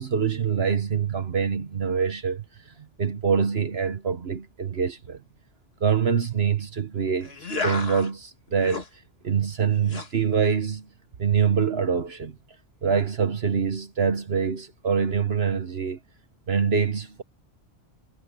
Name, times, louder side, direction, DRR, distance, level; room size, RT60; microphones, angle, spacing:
voice 1, 0.0-2.7 3.0-5.2 5.8-7.3 7.6-8.8 9.2-10.9 11.2-12.4 12.8-16.0 16.5-17.2, right 6 dB, 60° right, 1.3 m, -25 dB
sound 1, 7.2-8.1 8.5-8.9 9.8-10.1, left 3 dB, 55° left, 2.3 m, -32 dB
omnidirectional pair, 1.2 m